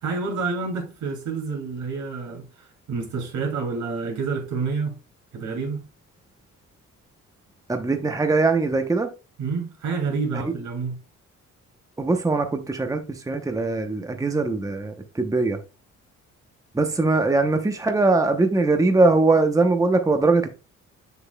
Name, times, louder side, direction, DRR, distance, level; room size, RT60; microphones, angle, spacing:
voice 1, 0.0-4.9 5.3-5.8 9.4-11.0, right 4 dB, 70° right, 2.6 m, -28 dB
voice 2, 7.7-9.1 12.0-15.6 16.7-20.5, right 3 dB, 10° right, 0.8 m, -21 dB
7.0 x 6.7 x 2.3 m
cardioid pair, 90°, 30 cm